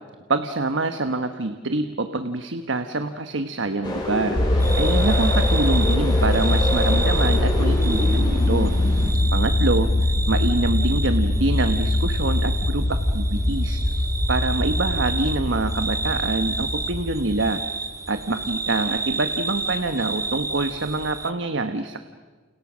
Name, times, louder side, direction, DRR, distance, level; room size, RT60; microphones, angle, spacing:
voice 1, 0.3-9.0 9.3-9.9 10.3-17.6 18.1-22.0, right 2 dB, 65° right, 8 dB, 1.2 m, -26 dB
sound 1, 3.8-9.1, left 1 dB, 25° left, 7.1 m, -27 dB
sound 2, 4.4-17.5, left 1 dB, 45° left, 1.3 m, -22 dB
sound 3, 4.6-21.3, right 3 dB, 15° right, 1.3 m, -31 dB
30.0 x 30.0 x 6.3 m, 1.4 s
head